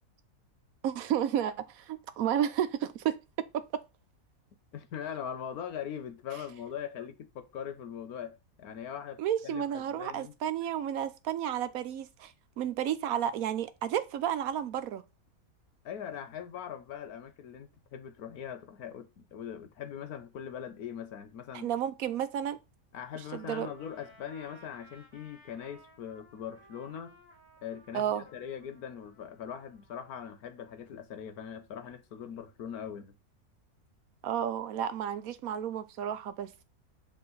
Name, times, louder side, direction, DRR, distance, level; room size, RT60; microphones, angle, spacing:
voice 1, 0.8-3.2 9.2-12.3 12.6-15.0 21.5-22.6 23.3-23.7 27.9-28.2 34.2-36.6, right 10 dB, 70° right, 1.1 m, -32 dB
voice 2, 4.7-10.3 15.8-21.7 22.9-27.2 27.6-33.2, left 8 dB, 80° left, 1.4 m, -41 dB
Trumpet, 23.2-30.3, right 1 dB, 10° right, 2.9 m, -59 dB
7.5 x 3.9 x 3.9 m
omnidirectional pair, 1.6 m